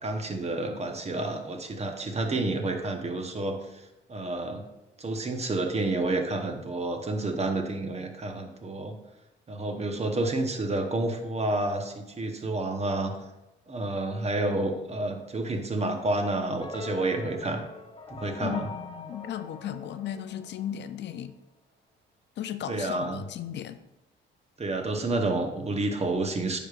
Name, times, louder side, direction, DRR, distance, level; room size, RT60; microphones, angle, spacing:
voice 1, 0.0-3.8 4.1-4.6 5.0-9.0 9.5-13.1 13.7-17.6 18.1-18.7 22.7-23.2 24.6-26.6, right 2 dB, 35° right, 1.0 m, -29 dB
sound 1, 16.6-20.9, left 4 dB, 30° left, 0.9 m, -43 dB
voice 2, 18.4-21.3 22.4-23.8, left 10 dB, 60° left, 0.4 m, -36 dB
9.8 x 4.9 x 2.5 m
cardioid pair, 90°, 20 cm